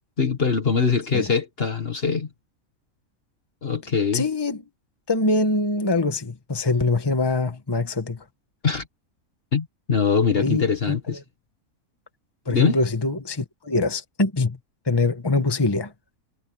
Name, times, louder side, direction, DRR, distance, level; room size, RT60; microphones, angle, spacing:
voice 1, 0.2-2.3 3.6-4.2 8.6-8.8 9.5-11.2 12.5-12.8, left 5 dB, 45° left, 1.7 m, -22 dB
voice 2, 4.1-4.6 5.1-8.2 10.4-11.0 12.4-14.6 14.8-15.9, left 2 dB, 15° left, 1.5 m, -23 dB
omnidirectional pair, 1.5 m